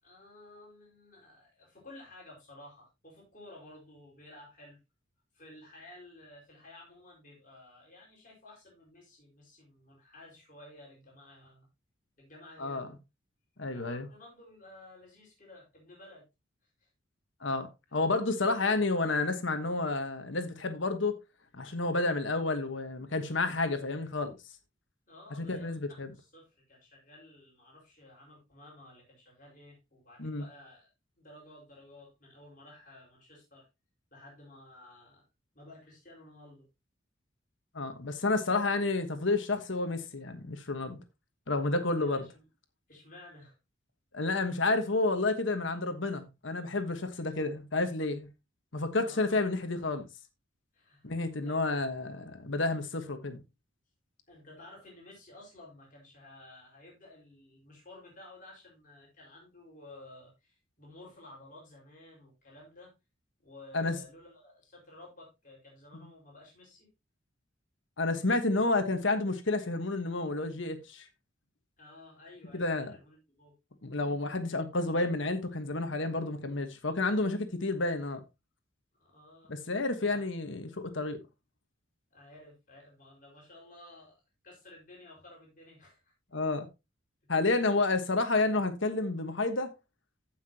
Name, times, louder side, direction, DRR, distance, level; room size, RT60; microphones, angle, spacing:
voice 1, 0.0-4.8 5.3-11.7 12.2-13.0 13.6-16.2 16.6-16.9 17.9-18.0 25.1-30.9 31.2-33.7 34.1-35.2 35.5-36.7 41.8-42.4 42.9-43.6 49.0-49.4 50.7-51.1 51.4-51.7 54.3-62.9 63.4-66.9 71.8-73.6 79.0-79.5 80.1-80.2 82.1-86.1 87.7-87.8, left 1 dB, 40° left, 5.0 m, -54 dB
voice 2, 13.6-14.1 17.4-21.2 21.5-24.3 25.4-26.1 30.2-30.4 37.7-41.0 41.5-42.2 44.1-48.3 48.7-50.1 51.0-53.4 63.7-64.0 68.0-71.0 72.5-73.0 73.8-78.2 79.5-81.2 86.3-86.7 87.3-89.7, left 3 dB, 70° left, 1.3 m, -30 dB
15.5 x 5.9 x 2.9 m
head